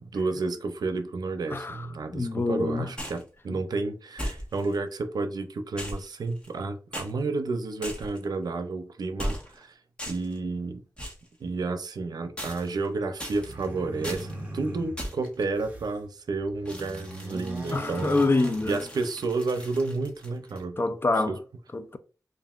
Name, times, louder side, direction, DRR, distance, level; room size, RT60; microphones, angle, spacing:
voice 1, 0.0-9.7 10.1-10.8 11.4-18.2 18.6-20.8 21.3-21.4, right 3 dB, 85° right, 0.5 m, -31 dB
voice 2, 1.5-1.9 2.1-2.9 17.7-18.8 20.8-21.4 21.7-22.0, left 3 dB, 35° left, 0.4 m, -26 dB
sound 1, 3.0-3.3 4.2-4.8 5.8-6.6 6.9-7.1 7.8-8.3 9.2-9.6 10.0-10.4 11.0-11.3 12.4-12.9 13.2-13.7 14.0-14.3 15.0-15.3 16.7-20.6, equal, 15° left, 1.3 m, -38 dB
sound 2, 13.3-16.0 16.4-19.3, right 1 dB, 25° right, 1.0 m, -39 dB
5.5 x 2.5 x 2.4 m
wide cardioid pair, 105°, 7 cm